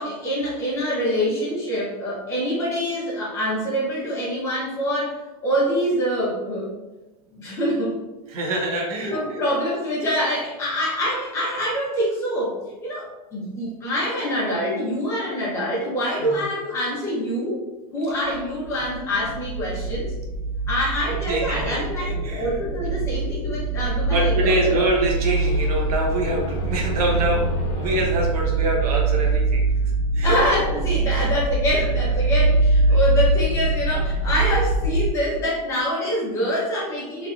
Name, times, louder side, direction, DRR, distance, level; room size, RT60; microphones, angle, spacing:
voice 1, 0.0-6.7 7.3-8.0 9.1-17.6 17.9-20.1 20.7-24.8 30.2-37.3, equal, 15° left, -6 dB, 0.8 m, -25 dB
voice 2, 8.3-9.1 16.2-16.4 21.3-21.7 22.0-22.5 24.1-29.7 30.1-30.3 31.1-31.3 31.8-31.9 32.9-33.0, right 2 dB, 85° right, 0 dB, 0.9 m, -25 dB
sound 1, 18.3-35.1, right 2 dB, 65° right, 0.4 m, -23 dB
sound 2, 24.7-29.5, right 2 dB, 30° left, 0.3 m, -33 dB
3.2 x 2.6 x 2.4 m, 1.1 s
supercardioid pair, 175°, 19 cm